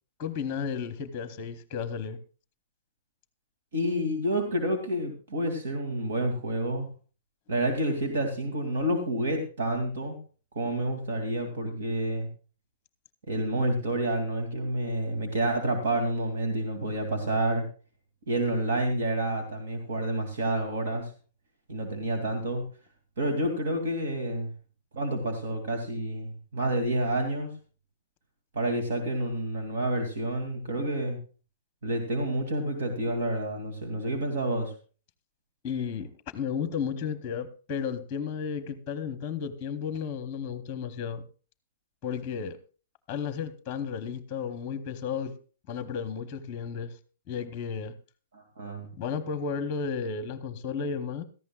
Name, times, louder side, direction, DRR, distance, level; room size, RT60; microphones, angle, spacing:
voice 1, 0.2-2.2 35.6-41.2 42.0-42.6 43.1-45.3 45.7-46.9 47.3-47.9 48.9-51.2, left 6 dB, 20° left, 1.0 m, -33 dB
voice 2, 3.7-6.9 7.5-10.2 10.5-12.3 13.3-17.6 18.3-21.1 21.7-22.6 23.2-24.5 24.9-27.5 28.5-31.2 31.8-34.7 48.3-48.9, right 1 dB, 70° right, 2.6 m, -29 dB
17.5 x 14.0 x 2.4 m
hypercardioid pair, 170°, 0 cm